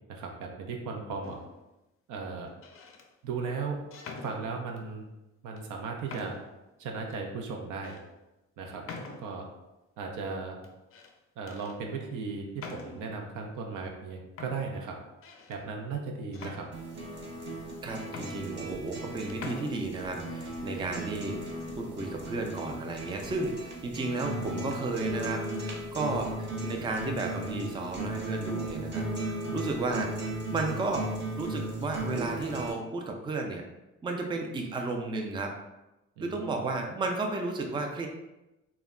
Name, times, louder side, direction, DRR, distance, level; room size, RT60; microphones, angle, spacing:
voice 1, 0.1-1.4 2.1-2.5 3.2-3.8 4.2-5.1 5.4-6.4 6.8-8.0 8.6-8.8 9.2-9.5 10.0-10.6 11.4-15.0 15.5-16.6 36.2-36.7, right 4 dB, 85° right, 2 dB, 0.6 m, -36 dB
sound 1, 1.2-1.7 2.5-3.1 3.9-4.9 5.6-5.7 6.1-6.6 7.1-7.2 7.8-8.0 8.9-9.5 10.6-11.1 11.5-11.8 12.6-13.2 14.0-14.1 14.4-15.6 16.3-17.2 17.7-17.8 18.1-19.0 19.3-19.7, left 4 dB, 45° left, 0.4 m, -45 dB
sound 2, 16.7-32.7, right 1 dB, 35° right, 0.7 m, -36 dB
voice 2, 17.8-21.4 21.8-30.1 30.5-31.1 31.4-33.6 34.0-35.5 36.2-38.1, right 3 dB, 15° right, 2 dB, 0.3 m, -33 dB
2.2 x 2.1 x 3.5 m, 0.98 s
cardioid pair, 90°, 30 cm